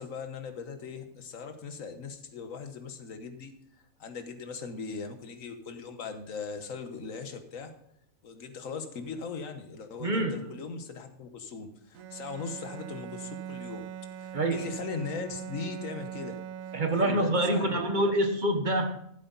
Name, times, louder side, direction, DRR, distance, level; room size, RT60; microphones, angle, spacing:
voice 1, 0.0-3.5 4.0-7.7 8.2-13.9 14.2-16.4 16.9-18.1, left 5 dB, 70° left, 7 dB, 1.6 m, -39 dB
voice 2, 10.0-10.5 14.3-14.7 16.7-19.0, right 1 dB, 35° right, 6 dB, 1.2 m, -26 dB
Bowed string instrument, 11.9-17.7, right 10 dB, 80° right, 1.1 m, -41 dB
14.0 x 8.2 x 4.0 m, 0.75 s
omnidirectional pair, 1.4 m